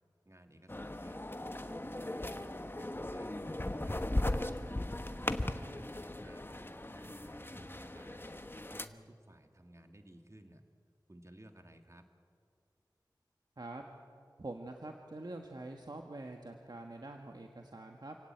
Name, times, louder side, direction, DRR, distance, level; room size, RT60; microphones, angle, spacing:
voice 1, 0.3-1.3 1.6-4.0 5.0-8.4 8.7-10.6 11.1-12.0, right 1 dB, 40° right, 6 dB, 2.0 m, -57 dB
sound 1, 0.7-8.9, left 1 dB, 30° left, 1.1 m, -38 dB
voice 2, 14.4-18.2, right 2 dB, 60° right, 3 dB, 1.6 m, -45 dB
28.0 x 17.5 x 8.8 m, 2.3 s
wide cardioid pair, 55°, 8 cm